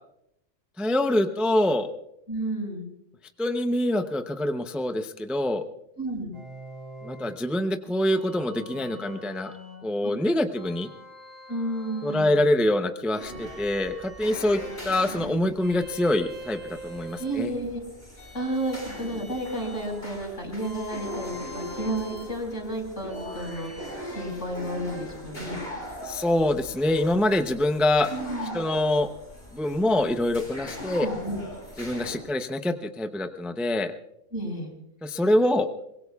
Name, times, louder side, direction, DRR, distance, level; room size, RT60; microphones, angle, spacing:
voice 1, 0.8-1.9 3.4-5.6 7.0-9.5 9.8-10.9 12.0-17.5 26.0-28.1 28.5-29.1 29.5-31.1 31.8-33.9 35.0-35.7, left 1 dB, ahead, 7 dB, 0.5 m, -25 dB
voice 2, 2.3-2.9 6.0-6.3 10.0-10.1 11.5-12.4 14.7-14.8 17.2-17.8 18.3-25.6 28.1-28.6 30.9-31.4 34.3-34.7, right 1 dB, 75° left, 0 dB, 5.3 m, -32 dB
sound 1, 6.3-7.3 8.1-9.9 10.5-12.4 13.1-14.9 15.6-17.4 18.2-20.0 20.6-22.3 23.1-23.9, equal, 35° left, 5.4 m, -44 dB
sound 2, 13.2-32.2, equal, 55° left, 7.9 m, -40 dB
23.5 x 21.0 x 2.4 m, 0.80 s
omnidirectional pair, 1.3 m